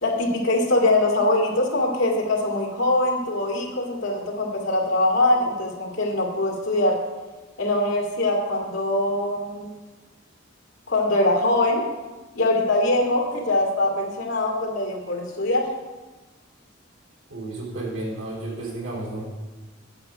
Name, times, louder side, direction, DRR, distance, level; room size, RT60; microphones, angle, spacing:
voice 1, 0.0-7.0 7.6-9.7 10.9-11.8 12.3-15.7, left 2 dB, 70° left, -1 dB, 2.2 m, -22 dB
voice 2, 17.3-19.2, right 2 dB, 85° right, -4 dB, 3.2 m, -32 dB
8.8 x 7.7 x 5.0 m, 1.2 s
head